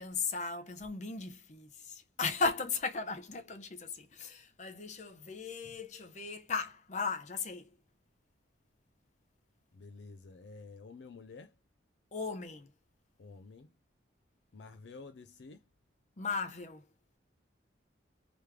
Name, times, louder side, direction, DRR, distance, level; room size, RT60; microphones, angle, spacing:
voice 1, 0.0-7.7 12.1-12.7 16.2-16.8, left 4 dB, 40° left, 0.8 m, -37 dB
voice 2, 9.7-11.6 13.2-13.7 14.5-15.7, left 4 dB, 65° left, 0.4 m, -50 dB
3.3 x 3.1 x 3.4 m
head